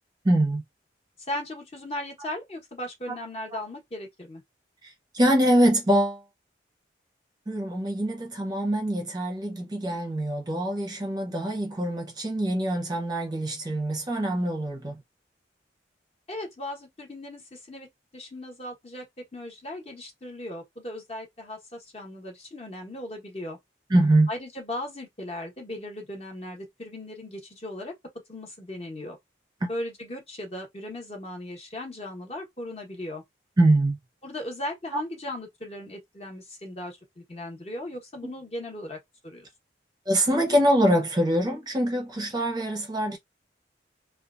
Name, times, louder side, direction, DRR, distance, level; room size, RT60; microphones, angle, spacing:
voice 1, 0.2-0.6 3.1-3.2 4.8-6.2 7.5-15.0 23.9-24.3 29.6-29.7 33.6-34.0 38.2-38.3 40.1-43.2, right 1 dB, 20° right, 0.6 m, -24 dB
voice 2, 1.3-4.4 16.3-17.9 18.1-19.0 19.3-23.6 24.3-27.9 28.3-29.2 29.7-33.2 34.2-39.0 39.2-39.5, left 1 dB, 35° left, 1.0 m, -37 dB
2.9 x 2.3 x 2.4 m
head